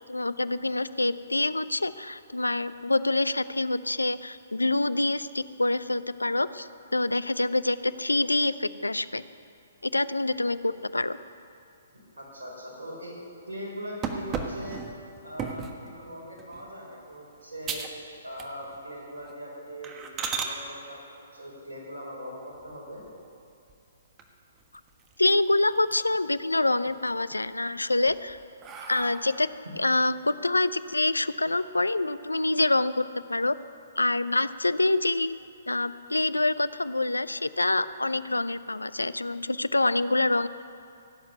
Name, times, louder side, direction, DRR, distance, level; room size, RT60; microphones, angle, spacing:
voice 1, 0.1-9.2 9.8-11.2 25.2-28.4 28.9-29.5 29.8-33.5 34.0-35.4 35.7-40.5, left 2 dB, 90° left, 15 dB, 0.5 m, -26 dB
voice 2, 11.9-13.1 13.5-14.8 15.2-17.8 18.2-23.0, equal, 75° right, -3 dB, 4.9 m, -41 dB
Opening Monster Mega Energy Drink (No Narration), 14.0-15.8 16.4-16.7 17.1-17.2 17.6-18.0 18.3-18.8 19.2-19.3 19.8-20.5 22.5-23.2 23.7-23.8 24.2-24.3 24.6-25.4 25.7-26.3 26.7-27.4 27.9-29.6, right 5 dB, 20° right, 1.4 m, -36 dB
16.5 x 8.0 x 9.4 m, 2.6 s
figure-of-eight pair, 125°, 0 cm